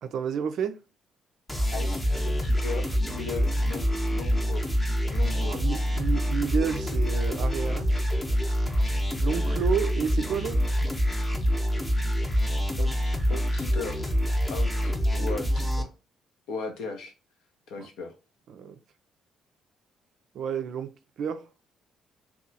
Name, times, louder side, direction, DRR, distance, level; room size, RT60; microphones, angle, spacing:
voice 1, 0.0-0.8 5.5-7.9 9.2-10.6 17.8-17.9 18.5-18.8 20.3-20.9 21.2-21.4, right 7 dB, 55° right, 0.3 m, -30 dB
sound 1, 1.5-15.8, equal, 10° left, 0.7 m, -26 dB
voice 2, 1.7-4.6 5.1-5.6 12.8-12.9 13.3-14.1 14.5-15.9 16.5-17.1 17.7-18.1, left 4 dB, 65° left, 0.6 m, -37 dB
2.7 x 2.3 x 2.6 m
figure-of-eight pair, 45°, 0 cm